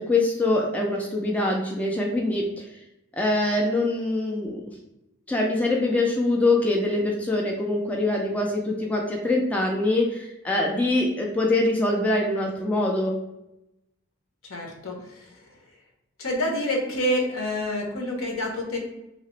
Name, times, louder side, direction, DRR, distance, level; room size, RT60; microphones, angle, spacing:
voice 1, 0.0-2.7 3.1-4.7 5.3-13.2, left 2 dB, 5° left, -1 dB, 0.3 m, -24 dB
voice 2, 14.5-15.3 16.2-18.8, left 1 dB, 80° left, 1 dB, 0.8 m, -27 dB
2.9 x 2.9 x 3.1 m, 0.88 s
head